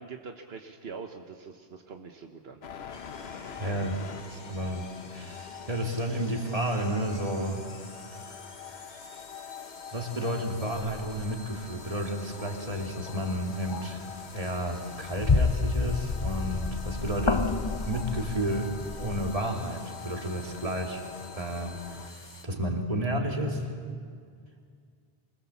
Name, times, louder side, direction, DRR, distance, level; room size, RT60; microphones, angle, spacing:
voice 1, 0.0-2.6, right 5 dB, 80° right, 5 dB, 1.3 m, -43 dB
sound 1, 2.6-22.1, left 7 dB, 80° left, 1.2 m, -46 dB
sound 2, 2.9-22.4, left 3 dB, 45° left, 1.6 m, -49 dB
voice 2, 3.6-4.0 4.3-7.7 9.9-17.4 17.9-21.0 21.3-23.7, equal, 35° right, 1 dB, 2.6 m, -31 dB
sound 3, 10.8-11.3 12.4-12.5 13.0-13.3 13.7-14.0 14.4-19.4, left 4 dB, 30° left, 0.7 m, -30 dB
24.5 x 20.5 x 7.1 m, 2.1 s
omnidirectional pair, 1.0 m